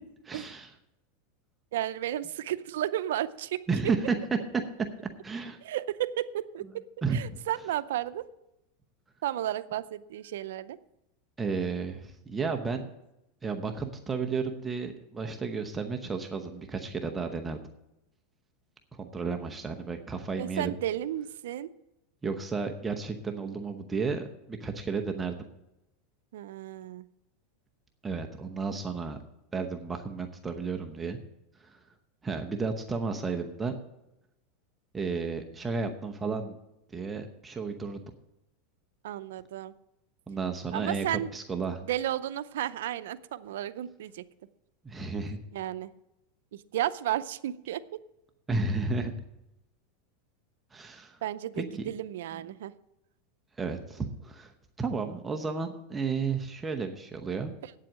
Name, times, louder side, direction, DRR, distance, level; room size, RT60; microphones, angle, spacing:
voice 1, 0.2-0.7 3.7-4.1 5.2-5.6 7.0-7.4 11.4-12.9 13.4-17.6 19.0-20.7 22.2-25.3 28.0-29.2 29.5-31.2 31.7-31.8 32.2-33.7 34.9-36.6 36.9-38.0 40.3-41.1 41.3-41.8 44.8-45.4 48.5-49.1 50.7-51.2 51.6-51.8 53.6-54.5 54.8-57.5, right 4 dB, 15° right, 4 dB, 0.9 m, -32 dB
voice 2, 1.7-3.6 5.6-6.8 7.1-8.3 9.2-10.8 20.4-21.7 26.3-27.1 39.0-39.7 40.7-41.3 41.8-44.2 45.5-45.9 46.5-48.0 51.2-52.7 57.6-57.7, right 12 dB, 80° right, 13 dB, 0.5 m, -33 dB
9.0 x 7.6 x 7.5 m, 0.87 s
supercardioid pair, 135°, 0 cm